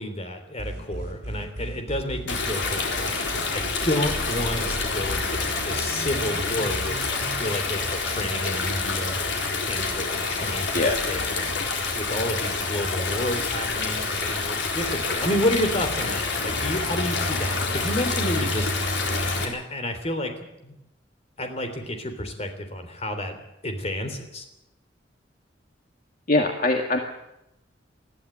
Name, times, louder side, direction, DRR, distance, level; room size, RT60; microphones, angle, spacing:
voice 1, 0.0-9.2 9.7-11.5 11.9-19.0 19.4-20.3 20.6-20.7 21.4-23.4 23.6-24.4, left 1 dB, 35° left, 6 dB, 3.4 m, -30 dB
sound 1, 0.6-7.4, equal, 65° right, 6.4 m, -36 dB
Stream, 2.3-19.4, left 3 dB, 75° left, 4.1 m, -27 dB
voice 2, 26.3-27.0, left 2 dB, 50° left, 3 dB, 1.9 m, -22 dB
20.5 x 14.0 x 9.0 m, 0.87 s
head